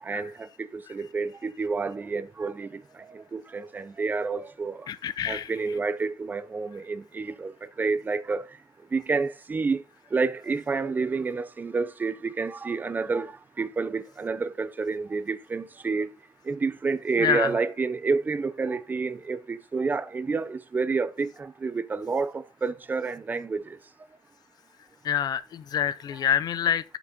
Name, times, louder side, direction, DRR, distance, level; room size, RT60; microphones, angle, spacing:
voice 1, 0.0-2.8 3.1-4.9 5.3-7.5 7.8-8.4 8.9-9.8 10.1-16.1 16.5-23.8, right 4 dB, 20° right, 0.6 m, -29 dB
voice 2, 4.9-5.5 17.2-17.5 25.0-26.8, left 9 dB, 55° left, 0.6 m, -26 dB
7.8 x 6.0 x 5.3 m
wide cardioid pair, 175°, 8 cm